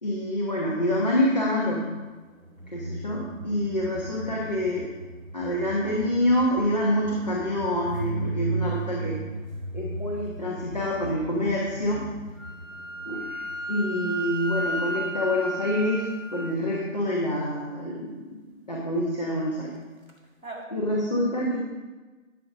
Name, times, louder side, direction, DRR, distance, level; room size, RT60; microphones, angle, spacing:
voice 1, 0.0-1.9 2.7-4.9 5.3-9.2 9.7-12.0 13.1-13.4 13.7-16.0 16.3-18.3 18.7-19.7 20.7-21.6, left 1 dB, 30° left, -4 dB, 1.2 m, -26 dB
sound 1, 2.3-13.9 20.1-20.2 20.4-20.6, right 3 dB, 90° right, 2.1 m, -36 dB
Wind instrument woodwind instrument, 12.4-16.6, right 1 dB, 70° left, 1.0 m, -33 dB
12.5 x 6.8 x 3.7 m, 1.2 s
figure-of-eight pair, 165°, 40 cm